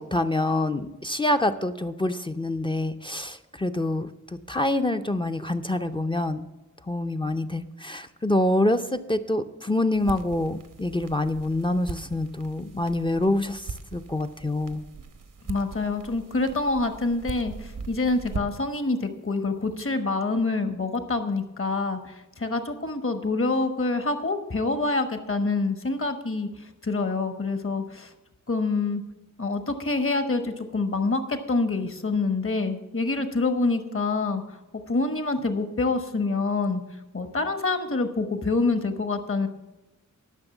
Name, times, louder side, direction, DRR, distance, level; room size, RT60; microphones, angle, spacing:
voice 1, 0.0-4.1 4.5-6.5 6.9-13.7 13.9-14.8, left 1 dB, 15° left, 10 dB, 0.5 m, -26 dB
sound 1, 9.9-18.8, right 4 dB, 85° right, 1.0 m, -40 dB
voice 2, 15.5-28.1 28.5-29.0 29.4-34.4 34.9-36.8 37.1-39.5, left 3 dB, 45° left, 8 dB, 1.2 m, -26 dB
11.5 x 6.2 x 7.1 m, 1.0 s
wide cardioid pair, 105°, 31 cm